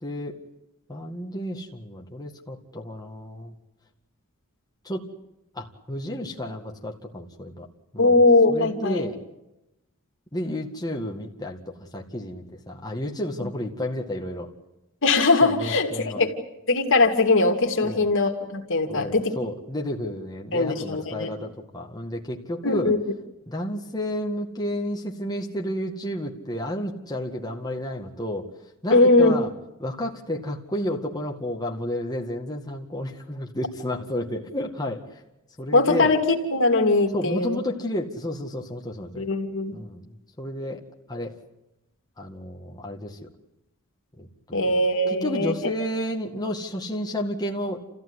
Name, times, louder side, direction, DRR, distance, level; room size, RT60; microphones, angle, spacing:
voice 1, 0.0-0.4 0.9-3.5 4.8-5.0 5.5-7.7 7.9-8.2 8.5-9.1 10.3-14.5 15.4-16.2 17.8-18.1 18.9-22.9 23.5-28.5 28.8-29.5 29.8-35.2 35.6-36.1 37.1-39.3 39.7-40.8 41.1-41.3 42.2-43.3 44.2-44.6 45.1-47.8, left 1 dB, 20° left, 0 dB, 2.0 m, -31 dB
voice 2, 8.0-9.0 15.0-16.3 16.7-19.3 20.5-21.3 22.6-23.0 28.9-29.3 35.7-37.6 39.1-39.8 44.5-45.5, left 2 dB, 60° left, 3 dB, 2.7 m, -20 dB
29.5 x 15.0 x 9.8 m, 0.93 s
head